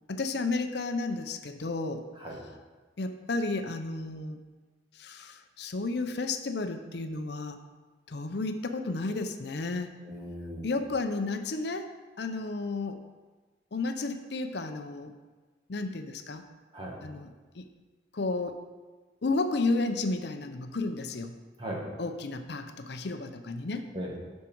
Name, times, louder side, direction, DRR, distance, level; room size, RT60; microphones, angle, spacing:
voice 1, 0.1-2.0 3.0-4.4 4.9-7.6 8.1-9.9 10.6-11.9 12.2-13.0 13.7-15.1 15.7-16.4 17.0-17.3 17.5-17.7 18.1-18.6 19.2-21.3 22.0-23.9, left 3 dB, 60° left, 7 dB, 0.6 m, -32 dB
voice 2, 10.0-10.8 16.7-17.0 21.6-21.9 23.9-24.2, equal, 25° right, -2 dB, 1.8 m, -38 dB
10.5 x 6.3 x 4.6 m, 1.3 s
head